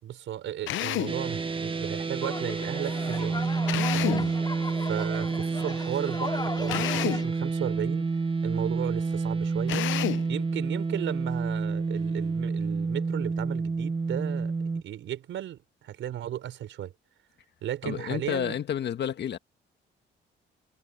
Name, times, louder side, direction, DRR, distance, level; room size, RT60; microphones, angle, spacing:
voice 1, 0.0-3.4 3.9-4.3 4.8-8.1 8.4-9.9 10.3-14.5 14.8-16.9 17.6-18.6, right 11 dB, 75° right, 5.2 m, -35 dB
Drill, 0.7-1.2 3.7-4.3 6.7-7.3 9.7-10.3, left 14 dB, 75° left, 0.7 m, -30 dB
sound 1, 1.1-14.8, right 4 dB, 25° right, 1.5 m, -29 dB
sound 2, 2.2-7.3, left 3 dB, 20° left, 5.7 m, -37 dB
voice 2, 17.8-19.4, left 9 dB, 60° left, 1.7 m, -30 dB
cardioid pair, 90°, 20 cm